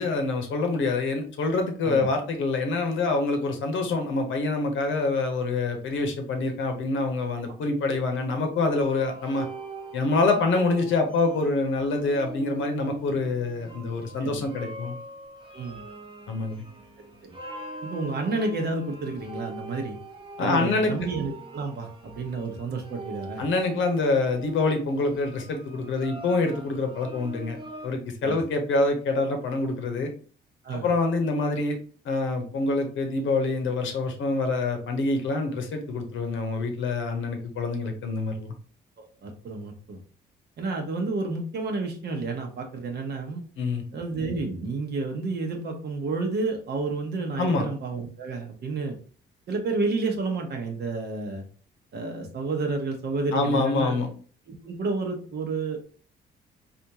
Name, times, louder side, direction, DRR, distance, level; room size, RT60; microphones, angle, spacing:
voice 1, 0.0-9.5 9.9-14.9 16.3-16.6 20.4-20.9 23.4-30.1 30.7-31.8 32.0-38.5 43.6-43.8 47.4-47.7 53.3-54.1, left 3 dB, 75° left, 5 dB, 0.8 m, -26 dB
sound 1, 8.8-27.9, right 2 dB, 25° right, 0.8 m, -43 dB
voice 2, 17.8-20.0 20.4-23.4 28.2-28.4 30.6-30.9 39.2-40.0 40.6-43.4 43.9-48.9 49.5-51.4 51.9-54.0 54.5-55.8, right 3 dB, 55° right, 2 dB, 0.8 m, -30 dB
3.5 x 2.5 x 2.8 m, 0.41 s
cardioid pair, 90°, 20 cm